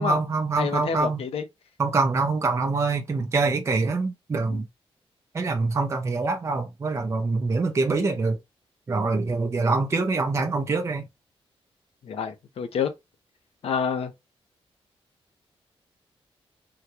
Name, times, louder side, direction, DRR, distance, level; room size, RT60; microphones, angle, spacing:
voice 1, 0.0-1.2 1.8-4.7 5.3-8.4 8.9-11.0, right 3 dB, 30° right, 0.5 m, -25 dB
voice 2, 0.6-1.4 4.5-4.6 12.0-12.9 13.6-14.1, left 6 dB, 75° left, 0.7 m, -28 dB
3.7 x 2.2 x 2.9 m
wide cardioid pair, 170°, 10 cm